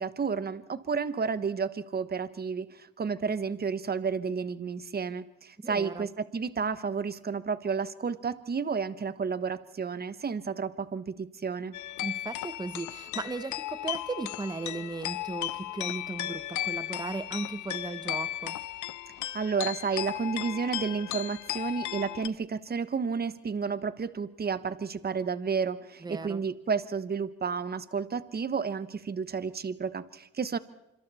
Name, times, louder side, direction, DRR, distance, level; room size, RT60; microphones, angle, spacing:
voice 1, 0.0-11.7 19.3-30.6, right 5 dB, 30° right, 14 dB, 1.2 m, -31 dB
voice 2, 5.6-6.1 12.0-18.6 26.0-26.4, right 3 dB, 15° right, 13 dB, 0.9 m, -36 dB
sound 1, 11.7-22.3, left 14 dB, 75° left, 0.7 m, -36 dB
26.0 x 26.0 x 4.3 m, 0.89 s
cardioid pair, 90°, 30 cm